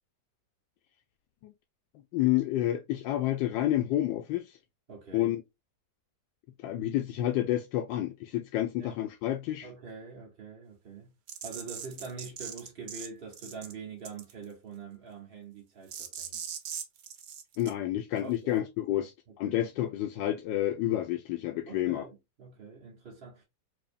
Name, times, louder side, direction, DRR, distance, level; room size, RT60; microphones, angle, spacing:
voice 1, 2.1-4.6 5.1-5.4 6.6-9.7 17.6-19.1 19.4-22.0, left 13 dB, 90° left, 1.3 m, -29 dB
voice 2, 4.9-5.4 8.8-9.0 9.6-11.2 11.4-16.5 18.2-18.7 18.9-19.6 21.6-23.4, right 5 dB, 45° right, 0.8 m, -45 dB
sound 1, 11.3-13.1 13.3-13.7 14.1-14.4 15.9-17.7, right 8 dB, 75° right, 1.3 m, -40 dB
4.7 x 2.7 x 2.4 m
omnidirectional pair, 1.9 m